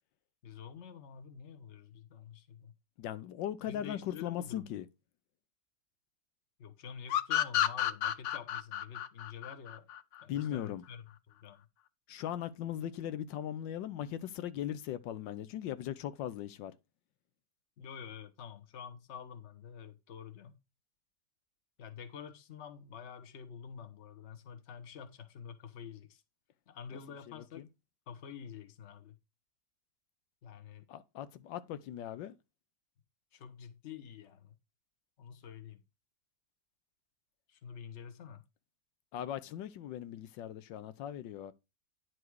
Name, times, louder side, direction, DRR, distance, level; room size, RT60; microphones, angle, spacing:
voice 1, 0.4-2.7 3.7-4.7 6.6-9.9 10.2-11.6 17.8-20.6 21.8-26.2 26.7-27.6 28.1-29.1 30.4-30.9 33.3-34.5 35.2-35.8 37.5-38.4, left 7 dB, 45° left, 1.2 m, -48 dB
voice 2, 3.0-4.9 10.3-10.8 12.1-16.7 26.9-27.0 27.3-27.6 30.9-32.3 39.1-41.5, left 11 dB, 90° left, 1.4 m, -39 dB
sound 1, 7.1-10.5, left 11 dB, 70° left, 0.7 m, -31 dB
10.0 x 4.8 x 4.6 m
omnidirectional pair, 1.9 m